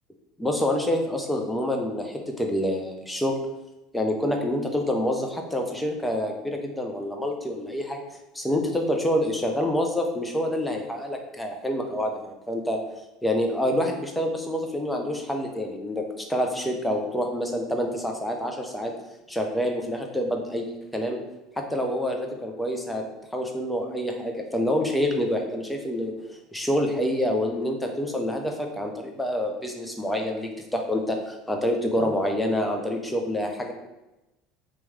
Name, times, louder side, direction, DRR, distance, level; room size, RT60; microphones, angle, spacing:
voice 1, 0.4-3.4 3.9-8.0 8.3-12.8 13.2-18.9 19.3-21.2 21.6-23.0 23.3-26.1 26.5-33.7, left 1 dB, 5° left, 2 dB, 0.7 m, -27 dB
3.0 x 3.0 x 3.5 m, 0.97 s
hypercardioid pair, 70°, 0 cm